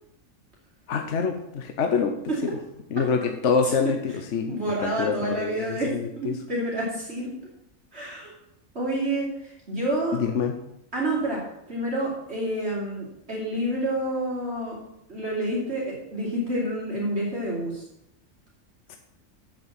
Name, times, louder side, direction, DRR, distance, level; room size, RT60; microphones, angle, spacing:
voice 1, 0.9-2.1 2.9-4.6 4.8-6.3 10.2-10.5 18.9-19.0, left 5 dB, 65° left, 5 dB, 1.2 m, -26 dB
voice 2, 4.5-7.3 7.9-8.3 8.7-10.2 10.9-11.4 11.7-14.8 15.1-17.8, right 1 dB, 55° right, -5 dB, 3.2 m, -28 dB
8.2 x 7.9 x 7.5 m, 0.81 s
omnidirectional pair, 1.3 m